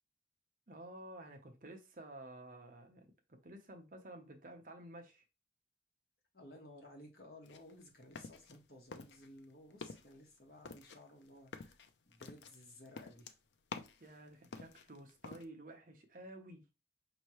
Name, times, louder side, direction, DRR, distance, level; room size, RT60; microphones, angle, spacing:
voice 1, 0.7-5.2 14.0-16.7, right 1 dB, 50° right, 0.8 m, -52 dB
voice 2, 6.3-11.8 12.0-13.3, left 1 dB, 60° left, 1.4 m, -56 dB
sound 1, 7.4-8.6 8.9-9.4 9.7-10.1 10.7-14.1 14.4-15.4, left 4 dB, 85° left, 0.5 m, -49 dB
5.4 x 3.0 x 3.0 m
head